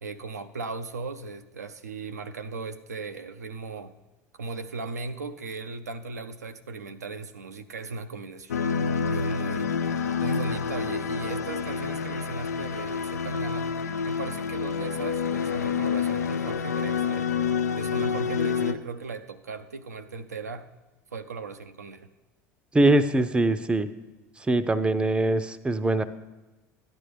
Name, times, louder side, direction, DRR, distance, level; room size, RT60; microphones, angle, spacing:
voice 1, 0.0-3.9 4.3-8.5 9.1-9.7 10.2-13.7 14.0-17.3 17.8-20.7 21.1-22.1, right 3 dB, 85° right, 7 dB, 0.4 m, -37 dB
sound 1, 8.5-18.7, left 6 dB, 80° left, 0.4 m, -28 dB
voice 2, 22.7-23.9 24.4-26.0, right 2 dB, 10° right, 13 dB, 0.6 m, -22 dB
13.5 x 10.0 x 3.4 m, 1.1 s
figure-of-eight pair, 70°, 9 cm